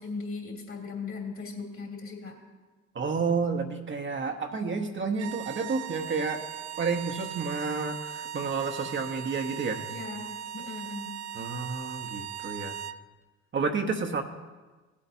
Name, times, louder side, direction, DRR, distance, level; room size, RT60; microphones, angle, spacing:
voice 1, 0.0-2.4 9.9-11.1, left 4 dB, 45° left, 0 dB, 2.8 m, -38 dB
voice 2, 2.9-6.4 6.8-9.8 11.3-12.8 13.5-14.2, right 4 dB, 40° right, 4 dB, 0.9 m, -30 dB
sound 1, 5.1-13.0, right 10 dB, 60° right, 0.4 m, -39 dB
16.0 x 8.4 x 2.7 m, 1.3 s
supercardioid pair, 70°, 30 cm